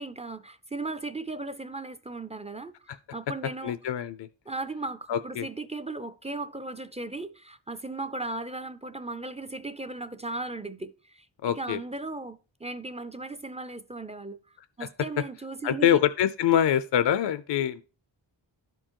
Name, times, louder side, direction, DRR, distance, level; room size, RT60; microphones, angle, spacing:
voice 1, 0.0-3.8 4.5-14.4 14.8-16.0, right 2 dB, 15° right, 0.4 m, -37 dB
voice 2, 3.6-4.3 5.1-5.5 11.4-11.8 14.8-14.9 15.6-17.8, left 10 dB, 65° left, 0.5 m, -24 dB
12.0 x 4.5 x 2.9 m
wide cardioid pair, 90°, 46 cm